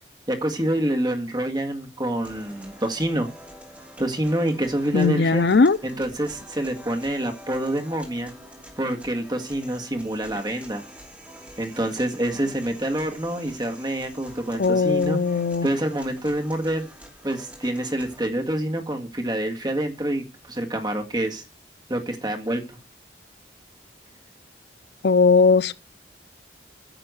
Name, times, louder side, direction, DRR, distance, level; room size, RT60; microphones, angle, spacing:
voice 1, 0.3-3.3 4.0-5.4 5.8-8.3 8.8-10.8 11.6-15.2 15.6-16.8 17.2-21.4 21.9-22.6, right 1 dB, 25° right, 1.8 m, -27 dB
sound 1, 2.2-18.2, equal, 10° right, 2.8 m, -46 dB
voice 2, 4.9-5.8 14.6-15.7 25.0-25.7, left 4 dB, 60° left, 0.5 m, -18 dB
10.0 x 6.7 x 7.9 m
head